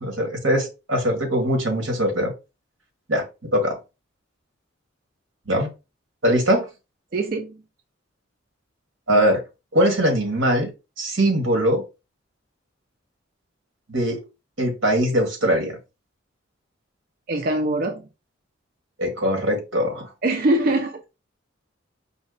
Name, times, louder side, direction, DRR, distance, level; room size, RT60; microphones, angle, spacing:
voice 1, 0.0-2.3 3.1-3.2 3.5-3.8 5.5-5.7 6.2-6.7 9.1-9.4 9.7-10.7 11.0-11.8 13.9-14.2 14.6-15.8 19.0-20.1, equal, 90° right, 1.7 m, -21 dB
voice 2, 7.1-7.5 17.3-18.0 20.2-21.0, right 2 dB, 45° right, 0.4 m, -22 dB
5.0 x 2.1 x 3.8 m
head